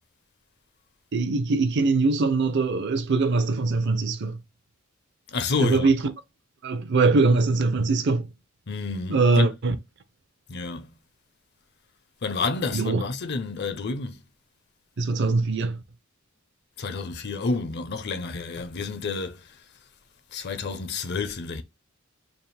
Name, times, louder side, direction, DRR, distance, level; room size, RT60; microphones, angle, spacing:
voice 1, 1.1-4.4 5.6-6.1 6.6-8.3 9.1-9.8 12.7-13.0 15.0-15.8, right 3 dB, 55° right, 0.5 m, -22 dB
voice 2, 5.3-5.9 8.7-9.5 10.5-10.9 12.2-14.2 16.8-19.5 20.3-21.6, left 4 dB, 50° left, 0.6 m, -29 dB
3.5 x 2.5 x 4.0 m
head